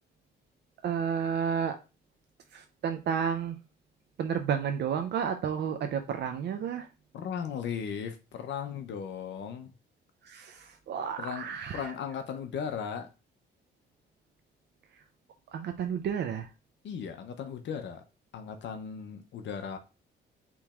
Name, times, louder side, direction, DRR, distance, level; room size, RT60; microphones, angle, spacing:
voice 1, 0.8-1.8 2.5-3.6 4.2-6.9 10.2-11.9 14.9-15.0 15.5-16.5, right 7 dB, 60° right, 0.5 m, -31 dB
voice 2, 7.1-9.7 11.2-11.5 11.7-13.1 16.8-18.0 18.3-19.8, left 7 dB, 65° left, 0.7 m, -36 dB
7.0 x 3.1 x 2.3 m
cardioid pair, 90°, 20 cm